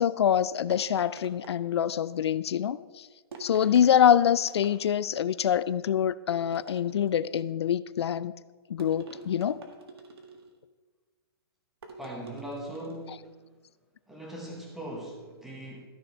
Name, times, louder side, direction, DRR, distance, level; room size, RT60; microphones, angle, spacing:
voice 1, 0.0-3.1 3.4-8.3 8.7-9.6, left 9 dB, 90° left, 17 dB, 0.4 m, -25 dB
sound 1, 0.7-2.1 3.3-4.0 4.4-5.1 6.5-7.4 8.8-10.6 11.8-13.1, right 4 dB, 70° right, 1.8 m, -48 dB
voice 2, 12.0-13.3 14.1-15.9, right 1 dB, ahead, -1 dB, 1.1 m, -40 dB
13.0 x 6.2 x 4.5 m, 1.4 s
hypercardioid pair, 175°, 13 cm